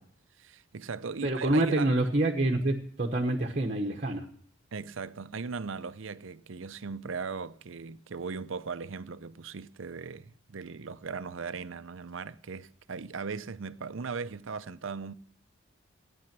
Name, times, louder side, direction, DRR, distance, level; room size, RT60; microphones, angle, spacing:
voice 1, 0.4-1.9 4.7-15.1, right 5 dB, 70° right, 0.6 m, -38 dB
voice 2, 1.2-4.2, right 1 dB, 40° right, 1.1 m, -27 dB
15.0 x 9.7 x 6.0 m
head